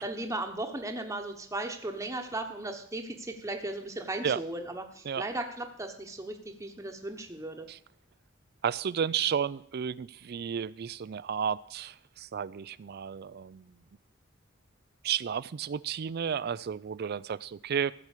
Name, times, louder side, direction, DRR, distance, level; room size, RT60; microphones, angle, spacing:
voice 1, 0.0-7.7, right 2 dB, 15° right, 2 dB, 1.1 m, -36 dB
voice 2, 8.6-13.7 15.0-17.9, right 7 dB, 55° right, 18 dB, 0.4 m, -32 dB
15.0 x 6.1 x 8.3 m, 0.67 s
head